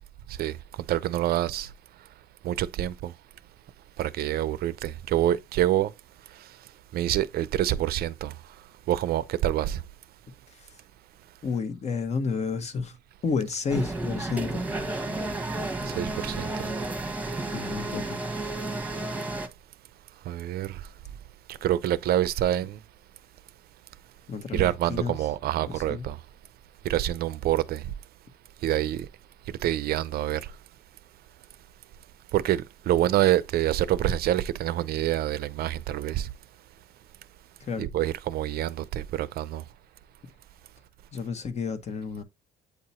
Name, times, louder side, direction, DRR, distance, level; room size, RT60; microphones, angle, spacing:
voice 1, 0.9-1.7 2.4-3.1 4.0-5.9 6.9-8.3 8.9-9.8 16.0-16.5 20.3-20.8 21.6-22.8 24.5-26.2 26.8-27.8 28.6-29.1 29.6-30.4 32.3-36.3 37.8-39.6, right 12 dB, 65° right, 0.6 m, -26 dB
voice 2, 10.5-10.8 11.4-13.0 13.2-14.6 17.5-18.2 24.3-25.1 25.7-26.0 37.6-37.9 41.1-42.2, left 5 dB, 40° left, 1.2 m, -31 dB
sound 1, 13.7-19.5, right 2 dB, 10° right, 1.2 m, -32 dB
8.4 x 2.8 x 4.2 m
cardioid pair, 110°, 17 cm